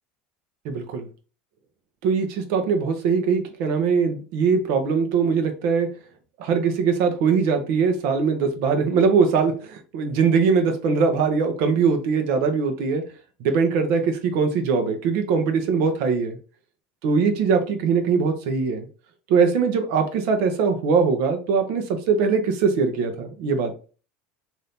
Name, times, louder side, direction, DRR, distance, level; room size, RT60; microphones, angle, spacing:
voice 1, 0.6-1.0 2.0-5.9 6.4-13.0 13.4-16.4 17.0-18.9 19.3-23.7, right 5 dB, 65° right, 6 dB, 0.8 m, -21 dB
2.7 x 2.7 x 3.5 m, 0.36 s
supercardioid pair, 115°, 4 cm